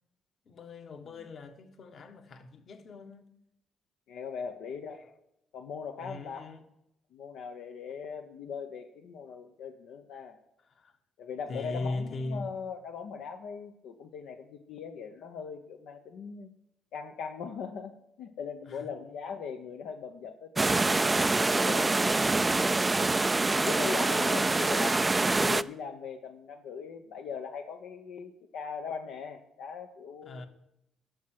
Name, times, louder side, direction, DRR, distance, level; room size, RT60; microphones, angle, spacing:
voice 1, 0.4-3.3 4.9-5.2 6.0-6.6 10.6-10.9 11.5-12.5 18.6-18.9 21.5-21.6 24.1-24.9 30.2-30.5, left 2 dB, 55° left, 1.4 m, -40 dB
voice 2, 4.1-5.0 5.5-6.5 7.1-10.4 11.2-16.5 16.9-22.0 22.7-22.9 23.4-25.0 25.4-30.4, left 6 dB, 80° left, 0.9 m, -40 dB
sound 1, 20.6-25.6, right 3 dB, 20° right, 0.4 m, -25 dB
12.0 x 6.4 x 7.6 m
cardioid pair, 90°, 0 cm